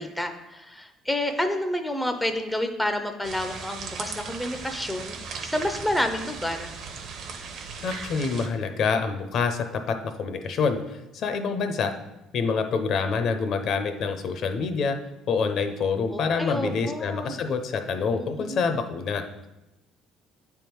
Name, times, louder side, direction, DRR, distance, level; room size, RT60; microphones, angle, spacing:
voice 1, 0.0-6.7 16.1-17.4 18.2-18.6, left 1 dB, 5° left, 6 dB, 0.4 m, -29 dB
sound 1, 3.2-8.5, right 5 dB, 55° right, 0.8 m, -37 dB
voice 2, 7.8-11.9 12.3-15.0 15.3-19.2, left 5 dB, 50° left, 7 dB, 0.6 m, -26 dB
8.6 x 3.5 x 4.5 m, 0.96 s
cardioid pair, 140°, 0 cm